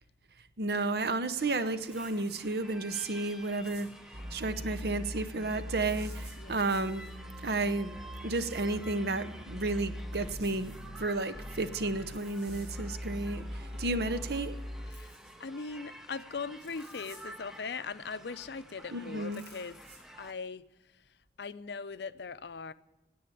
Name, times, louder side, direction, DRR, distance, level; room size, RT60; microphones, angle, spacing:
voice 1, 0.6-3.9 4.3-7.1 7.4-8.0 8.2-10.7 11.0-14.6 18.9-19.4, right 2 dB, 65° right, 0.8 m, -32 dB
sound 1, 1.4-20.3, right 1 dB, 5° right, 0.6 m, -51 dB
sound 2, 1.9-2.4 3.6-4.1 5.8-7.2 8.4-8.7 10.4-10.9 12.1-12.8 14.9-15.4 16.6-17.3 19.3-20.0, right 3 dB, 80° right, 3.8 m, -55 dB
sound 3, 4.1-11.1 11.3-12.2 12.5-14.9, equal, 40° right, 1.0 m, -42 dB
voice 2, 13.7-14.1 14.9-15.1 15.4-19.8 20.1-22.7, left 5 dB, 75° left, 0.5 m, -40 dB
10.0 x 8.7 x 9.8 m
head